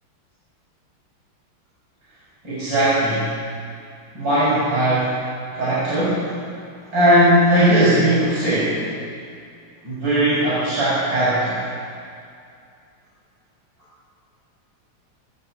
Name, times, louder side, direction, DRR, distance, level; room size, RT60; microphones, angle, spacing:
voice 1, 2.4-3.3 4.1-5.1 5.5-6.3 6.9-8.8 9.8-11.7, right 1 dB, 60° right, -11 dB, 7.8 m, -18 dB
21.5 x 15.5 x 8.1 m, 2.4 s
omnidirectional pair, 2.3 m